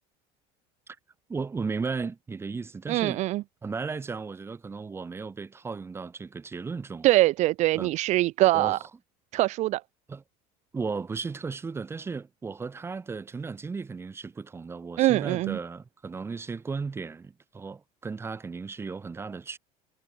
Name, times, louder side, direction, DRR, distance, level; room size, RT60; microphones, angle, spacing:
voice 1, 1.3-3.2 3.6-7.1 7.7-7.9 8.5-8.9 10.1-10.2 10.7-19.6, right 4 dB, 15° right, 4.2 m, -35 dB
voice 2, 2.9-3.4 7.0-8.8 9.3-9.8 15.0-15.6, right 17 dB, 50° right, 1.3 m, -23 dB
cardioid pair, 155°, 16 cm